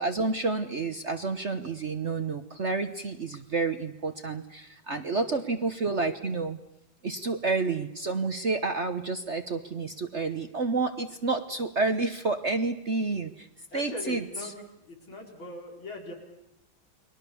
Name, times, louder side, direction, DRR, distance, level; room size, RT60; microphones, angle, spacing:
voice 1, 0.0-6.6 7.0-13.5 13.7-14.2, right 3 dB, 40° right, 8 dB, 1.1 m, -29 dB
voice 2, 5.1-5.4 13.7-14.5 14.8-16.1, left 2 dB, 75° left, 1 dB, 5.6 m, -40 dB
30.0 x 22.0 x 7.1 m, 0.82 s
omnidirectional pair, 2.2 m